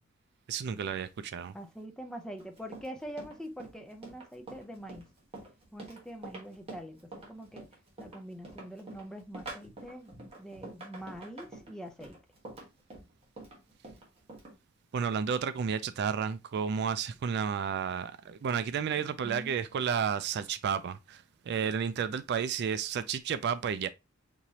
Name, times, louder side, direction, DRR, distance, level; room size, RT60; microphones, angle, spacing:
voice 1, 0.5-1.5 14.9-23.9, right 7 dB, 55° right, 0.3 m, -32 dB
voice 2, 1.5-5.1 5.7-7.0 7.3-7.7 8.0-10.1 10.4-12.2 19.0-19.6, equal, 5° left, 0.5 m, -44 dB
Run, 2.4-14.5, right 2 dB, 30° right, 1.3 m, -47 dB
4.6 x 2.9 x 2.7 m
head